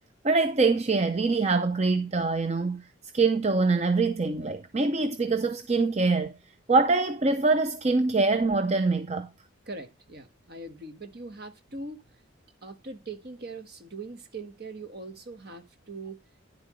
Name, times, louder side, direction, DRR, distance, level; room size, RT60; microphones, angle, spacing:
voice 1, 0.2-2.8 3.1-6.4 6.7-9.3, right 3 dB, 30° right, 0.5 m, -24 dB
voice 2, 9.7-12.1 12.6-16.2, right 3 dB, 50° right, 1.5 m, -41 dB
10.0 x 7.5 x 3.1 m
head